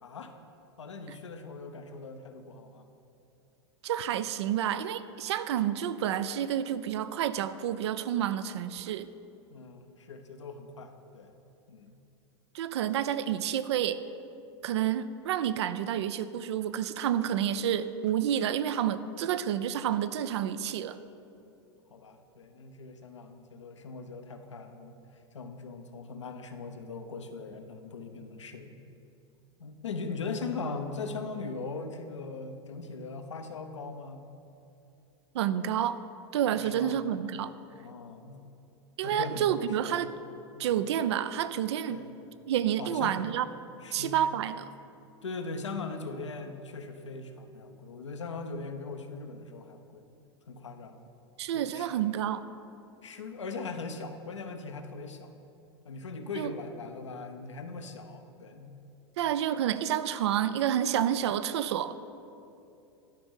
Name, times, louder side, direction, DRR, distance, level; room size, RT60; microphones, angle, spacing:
voice 1, 0.0-0.3 0.8-2.9 9.5-11.3 11.7-12.0 21.9-28.8 29.6-34.3 36.6-37.1 37.7-38.4 39.0-40.1 40.5-40.9 41.9-42.1 42.8-43.2 43.8-44.2 45.2-50.1 50.5-51.0 51.5-51.9 53.0-55.3 55.8-58.8, left 4 dB, 85° left, 7 dB, 0.7 m, -40 dB
voice 2, 3.8-9.1 12.5-14.0 14.6-21.0 35.3-36.0 36.3-37.5 39.0-40.1 40.6-42.0 42.5-43.4 43.9-44.7 51.4-52.4 56.4-56.5 59.2-62.0, right 10 dB, 70° right, 14 dB, 0.5 m, -29 dB
12.0 x 5.0 x 5.5 m, 2.8 s
hypercardioid pair, 100°, 15 cm